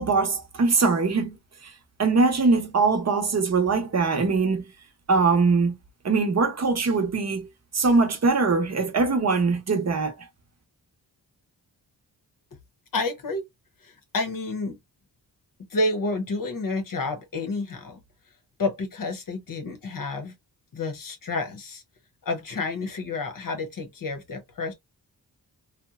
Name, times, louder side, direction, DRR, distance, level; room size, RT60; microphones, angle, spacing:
voice 1, 0.0-1.4 1.6-1.7 2.0-4.6 5.1-5.8 6.0-7.5 7.7-10.1, right 4 dB, 40° right, 0.8 m, -22 dB
voice 2, 12.9-13.4 13.8-14.8 15.7-18.0 18.6-20.3 20.7-21.8 22.2-24.7, left 3 dB, 55° left, 0.7 m, -29 dB
2.8 x 2.1 x 2.3 m
cardioid pair, 65°, 41 cm